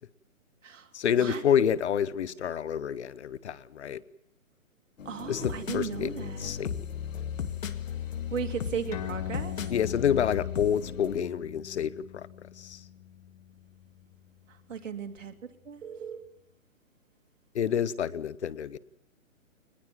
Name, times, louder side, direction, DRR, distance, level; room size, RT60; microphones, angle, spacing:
voice 1, 0.9-4.0 5.3-6.7 9.7-12.3 12.6-12.8 17.5-18.8, left 8 dB, 55° left, 20 dB, 1.1 m, -28 dB
sound 1, 5.0-11.2, left 8 dB, 70° left, 1.9 m, -36 dB
voice 2, 5.0-6.5 8.3-9.6 14.5-15.3 15.6-16.3, right 7 dB, 65° right, 6 dB, 2.9 m, -36 dB
sound 2, 8.9-15.8, left 10 dB, 25° left, 1.4 m, -43 dB
22.5 x 20.5 x 7.7 m, 0.76 s
hypercardioid pair, 160°, 41 cm